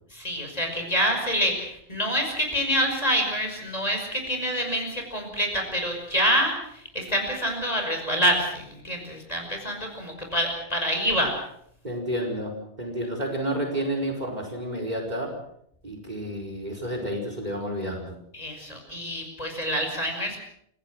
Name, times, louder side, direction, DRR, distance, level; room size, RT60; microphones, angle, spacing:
voice 1, 0.1-11.3 18.3-20.4, equal, 30° left, 3 dB, 5.7 m, -27 dB
voice 2, 11.8-15.3 15.8-18.1, right 1 dB, 35° right, 2 dB, 4.9 m, -30 dB
28.5 x 17.5 x 6.3 m, 0.70 s
omnidirectional pair, 1.2 m